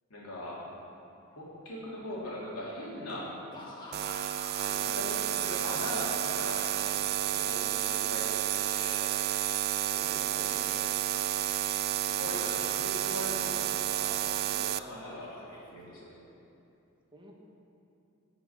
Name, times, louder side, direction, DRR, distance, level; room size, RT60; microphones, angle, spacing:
voice 1, 0.1-0.6 1.3-3.4 4.6-8.9 11.9-14.1 14.4-16.1, left 1 dB, 80° left, -5 dB, 3.4 m, -40 dB
Laughter / Cough, 3.5-6.8 7.1-7.9 8.6-9.8 10.4-11.6 12.3-13.3 13.9-14.5 14.9-16.1, left 1 dB, 20° left, 1.7 m, -48 dB
sound 1, 3.9-14.8, right 12 dB, 45° right, 0.3 m, -31 dB
voice 2, 9.8-10.9 17.1-17.4, right 1 dB, 20° right, -1 dB, 1.4 m, -49 dB
12.5 x 6.0 x 9.0 m, 2.8 s
head